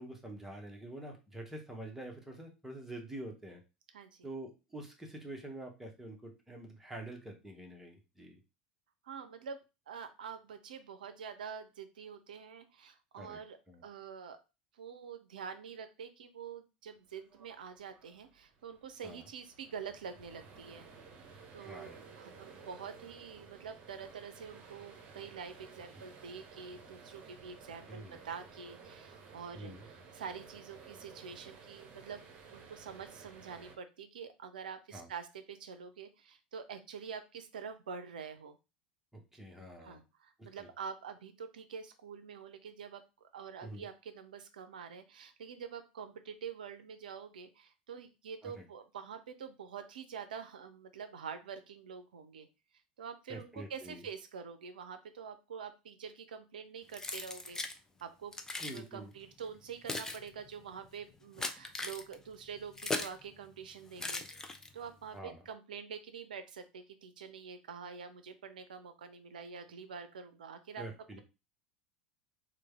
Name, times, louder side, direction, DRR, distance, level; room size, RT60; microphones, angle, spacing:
voice 1, 0.0-3.6 4.2-8.4 13.2-13.4 13.7-13.8 19.0-19.2 21.6-22.0 27.9-28.2 29.5-29.9 34.9-35.1 39.1-40.0 40.4-40.7 43.6-43.8 48.4-48.6 53.3-54.0 58.6-59.1 65.1-65.4 70.8-71.2, right 1 dB, 5° right, 1 dB, 1.0 m, -46 dB
voice 2, 3.9-4.3 9.0-9.6 9.9-14.4 14.7-20.9 21.5-32.2 32.5-38.6 39.8-52.5 53.0-57.6 58.0-58.3 58.6-70.8, right 6 dB, 75° right, 9 dB, 0.5 m, -46 dB
sound 1, 17.1-33.8, right 5 dB, 40° right, 0.8 m, -55 dB
Keys jangling, 56.9-57.8 58.3-58.8 59.5-63.2 64.0-64.9, left 2 dB, 10° left, 0.5 m, -39 dB
3.2 x 2.2 x 3.3 m, 0.28 s
figure-of-eight pair, 75°, 5 cm